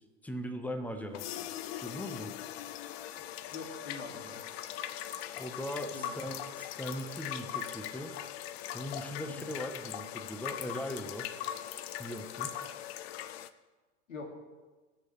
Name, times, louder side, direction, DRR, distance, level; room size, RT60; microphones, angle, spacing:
voice 1, 0.2-1.4 1.8-2.3 5.3-8.1 8.7-11.5 12.0-12.6, equal, 5° left, 6 dB, 1.0 m, -39 dB
sound 1, 1.1-13.5, left 11 dB, 50° left, 0.6 m, -40 dB
voice 2, 3.5-4.4 5.9-6.2 9.2-9.5 14.1-14.3, left 3 dB, 75° left, 2 dB, 2.4 m, -43 dB
17.5 x 6.6 x 3.3 m, 1.3 s
figure-of-eight pair, 95°, 39 cm